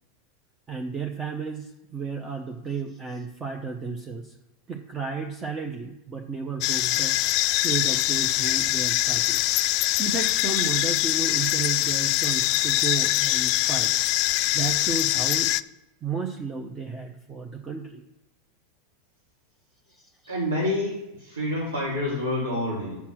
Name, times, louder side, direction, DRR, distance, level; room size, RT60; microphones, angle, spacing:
voice 1, 0.7-4.3 4.7-7.2 7.5-9.4 10.0-13.9 14.5-15.5 16.0-18.0 20.0-20.1, right 5 dB, 25° right, 3 dB, 0.9 m, -33 dB
sound 1, 6.6-15.6, left 17 dB, 50° left, 0.3 m, -23 dB
voice 2, 20.3-23.0, left 1 dB, 90° right, -9 dB, 3.2 m, -28 dB
7.1 x 5.8 x 6.3 m, 0.97 s
hypercardioid pair, 90°, 0 cm